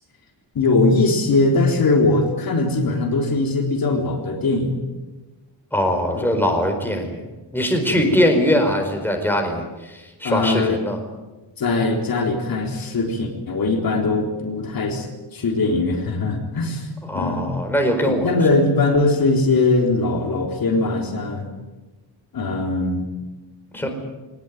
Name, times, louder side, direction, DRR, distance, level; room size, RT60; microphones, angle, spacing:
voice 1, 0.5-4.8 6.1-6.3 6.6-7.1 7.9-8.1 10.2-10.8 11.6-15.1 15.3-16.9 17.1-17.5 18.0-21.5 22.3-23.1 23.8-23.9, left 3 dB, 50° left, 2 dB, 3.9 m, -21 dB
voice 2, 5.7-7.2 7.5-11.0 17.0-18.3 23.7-23.9, equal, 5° left, 3 dB, 4.5 m, -21 dB
22.5 x 19.5 x 9.4 m, 1.2 s
wide cardioid pair, 155°, 44 cm